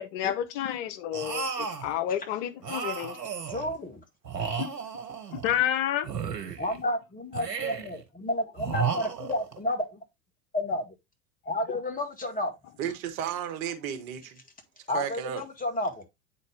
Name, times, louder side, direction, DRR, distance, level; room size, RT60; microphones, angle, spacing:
voice 1, 0.0-3.2 4.6-4.7 5.3-6.1 11.7-11.8, left 11 dB, 55° left, 1.0 m, -30 dB
sound 1, 1.1-1.9 2.6-3.7 4.2-5.6 6.0-6.8 7.3-8.0 8.6-9.6, right 6 dB, 85° right, 1.3 m, -33 dB
voice 2, 3.5-4.0 6.6-10.0 10.5-10.9 11.5-12.5 14.9-16.0, left 1 dB, 15° left, 1.9 m, -31 dB
voice 3, 12.8-14.4 14.9-15.4, right 9 dB, 60° right, 1.5 m, -33 dB
8.7 x 4.1 x 3.4 m
figure-of-eight pair, 80°, 47 cm